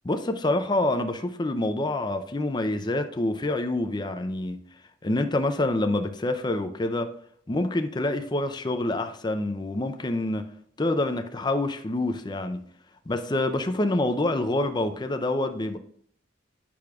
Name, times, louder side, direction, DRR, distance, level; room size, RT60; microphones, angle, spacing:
voice 1, 0.0-4.6 5.0-7.1 7.5-10.4 10.8-12.6 13.1-15.8, left 2 dB, 25° left, 0.5 m, -26 dB
8.5 x 6.2 x 2.4 m
head